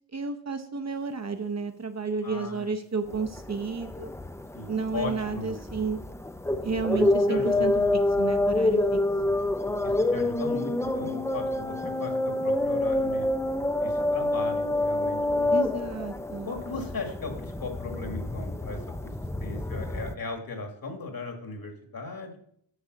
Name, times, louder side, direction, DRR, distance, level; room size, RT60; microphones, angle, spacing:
voice 1, 0.1-4.1 4.7-6.0 6.6-9.0 15.5-16.5, right 4 dB, 35° right, 7 dB, 0.7 m, -32 dB
voice 2, 2.2-2.7 4.5-5.6 6.9-8.0 9.8-13.3 13.8-15.6 16.4-19.1 19.4-22.4, left 3 dB, 50° left, 5 dB, 1.6 m, -37 dB
sound 1, 3.1-20.1, left 2 dB, 5° left, 0.3 m, -27 dB
8.3 x 5.5 x 6.1 m, 0.68 s
wide cardioid pair, 140°, 44 cm